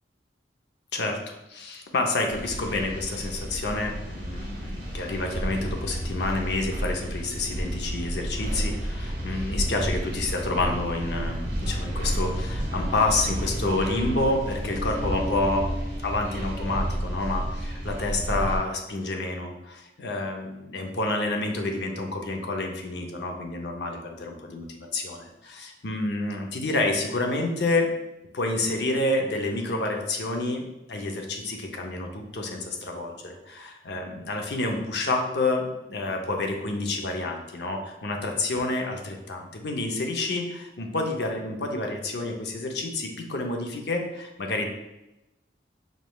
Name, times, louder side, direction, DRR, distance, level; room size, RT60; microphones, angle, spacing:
voice 1, 0.9-15.7 16.0-27.9 28.3-44.7, left 2 dB, 70° left, 2 dB, 0.7 m, -29 dB
sound 1, 2.3-18.6, equal, 85° right, 1.4 m, -31 dB
5.2 x 3.2 x 2.3 m, 0.94 s
head